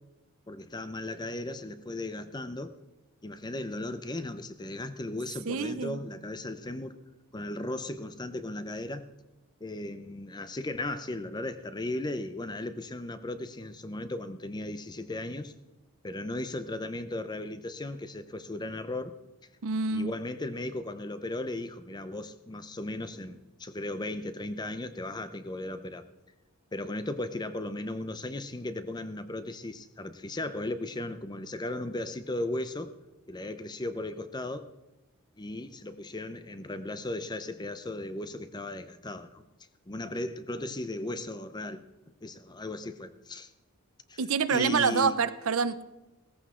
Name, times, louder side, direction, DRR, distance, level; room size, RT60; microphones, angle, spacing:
voice 1, 0.5-2.7 3.2-7.0 7.3-9.1 9.6-15.5 16.0-19.1 19.9-26.1 26.7-32.9 33.3-34.7 35.4-39.4 39.9-41.8 42.2-43.5 44.1-44.2 44.5-45.2, left 2 dB, 20° left, 0.6 m, -36 dB
voice 2, 5.5-6.0 19.6-20.1 44.2-45.8, right 5 dB, 65° right, 0.6 m, -27 dB
16.5 x 14.5 x 3.7 m
head